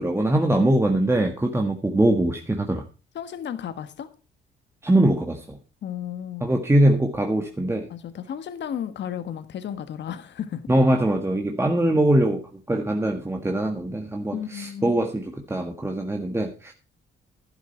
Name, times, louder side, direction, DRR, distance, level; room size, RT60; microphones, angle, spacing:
voice 1, 0.0-2.8 4.8-5.6 6.4-7.9 10.7-12.4 12.7-16.7, right 1 dB, 15° right, 1.7 m, -22 dB
voice 2, 3.1-4.1 5.8-6.4 7.9-10.6 14.3-15.0, left 9 dB, 65° left, 1.4 m, -33 dB
11.5 x 11.5 x 4.4 m
cardioid pair, 90°, 20 cm